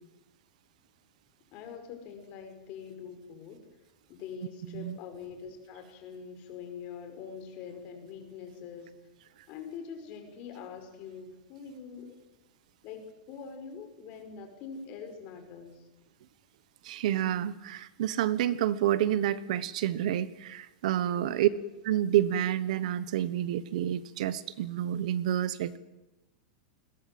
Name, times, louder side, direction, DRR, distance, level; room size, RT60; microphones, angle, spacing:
voice 1, 1.5-3.6 4.1-9.0 9.5-12.2 12.8-15.9 21.2-21.6, left 6 dB, 35° left, 6 dB, 5.6 m, -44 dB
voice 2, 16.8-21.5 21.8-25.8, right 11 dB, 60° right, 16 dB, 1.2 m, -29 dB
29.0 x 21.5 x 7.8 m, 0.99 s
supercardioid pair, 175°, 4 cm